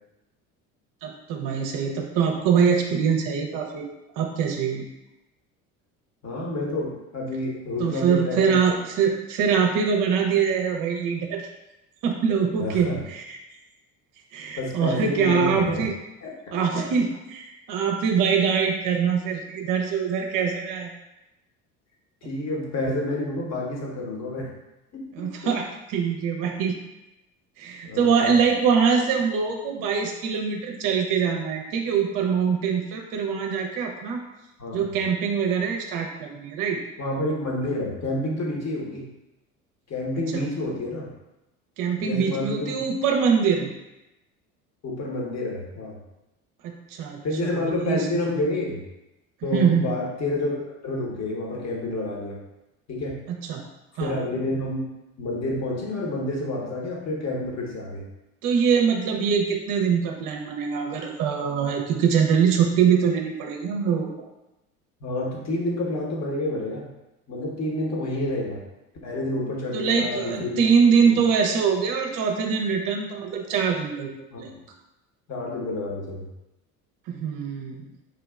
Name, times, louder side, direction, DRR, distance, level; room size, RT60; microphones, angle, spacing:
voice 1, 1.0-3.9 4.2-4.8 7.8-11.5 12.0-13.4 14.3-15.9 16.5-20.9 25.1-26.8 27.6-34.2 34.7-36.8 40.3-40.4 41.8-43.7 46.6-48.1 49.5-49.9 53.3-53.6 54.0-54.2 58.4-64.3 69.7-74.1 74.4-74.5 77.1-77.8, right 6 dB, 45° right, 2 dB, 0.6 m, -23 dB
voice 2, 6.2-8.7 12.6-13.0 14.6-15.8 16.2-16.3 16.7-16.8 22.2-24.5 24.9-25.5 27.8-28.3 34.6-34.8 37.0-39.1 39.9-41.1 42.0-42.8 44.8-46.0 47.2-48.8 49.4-50.6 50.8-52.4 52.9-53.2 54.0-54.9 55.2-58.0 65.0-66.9 67.3-68.6 69.0-70.7 71.0-71.3 74.3-74.4 75.3-76.3, left 2 dB, 35° left, -2 dB, 1.2 m, -29 dB
4.9 x 2.8 x 2.3 m, 0.96 s
figure-of-eight pair, 65°, 45 cm